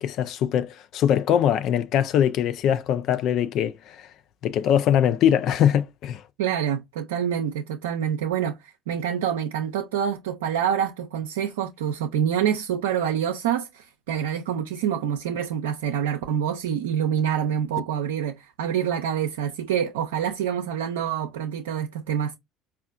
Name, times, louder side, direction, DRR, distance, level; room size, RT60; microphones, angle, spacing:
voice 1, 0.0-4.1 4.4-6.2, left 9 dB, 60° left, 0.3 m, -22 dB
voice 2, 6.4-22.3, right 9 dB, 85° right, 0.4 m, -26 dB
4.3 x 2.3 x 2.4 m
hypercardioid pair, 75°, 0 cm